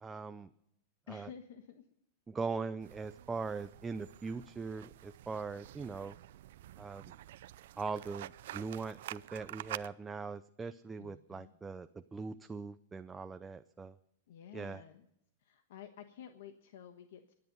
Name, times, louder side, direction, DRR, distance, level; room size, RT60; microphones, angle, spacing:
voice 1, 0.0-0.5 1.1-1.3 2.3-6.2 6.8-7.1 7.8-14.0 14.5-14.8, right 4 dB, 10° right, 10 dB, 0.5 m, -41 dB
voice 2, 1.1-1.8 11.0-11.5 14.3-15.1 15.4-17.3, left 9 dB, 70° left, 7 dB, 1.3 m, -51 dB
sound 1, 2.8-9.9, right 14 dB, 70° right, 0.5 m, -48 dB
23.5 x 10.5 x 5.4 m, 0.76 s
supercardioid pair, 145°, 0 cm